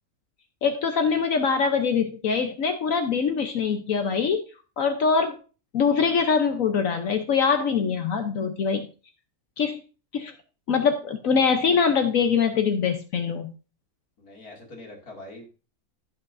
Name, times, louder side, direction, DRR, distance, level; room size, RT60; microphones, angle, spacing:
voice 1, 0.6-4.4 4.8-5.4 5.7-8.9 9.6-9.8 10.1-10.3 10.7-13.5, left 6 dB, 70° left, 6 dB, 1.3 m, -23 dB
voice 2, 14.2-15.5, left 1 dB, 90° left, 0 dB, 3.0 m, -43 dB
16.0 x 5.8 x 2.6 m, 0.34 s
omnidirectional pair, 1.5 m